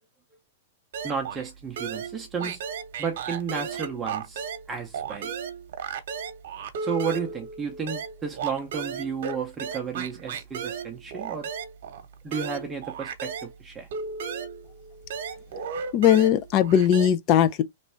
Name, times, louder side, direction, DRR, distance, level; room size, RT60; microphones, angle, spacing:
sound 1, 0.9-1.5 1.8-4.7 4.9-13.5 13.9-17.1, right 6 dB, 65° right, 0.9 m, -35 dB
voice 1, 1.0-2.6 3.0-5.3 6.8-11.5 12.2-13.9, right 6 dB, 15° right, 0.6 m, -32 dB
voice 2, 15.9-17.6, left 10 dB, 35° left, 0.4 m, -19 dB
3.2 x 2.5 x 4.4 m
hypercardioid pair, 150°, 0 cm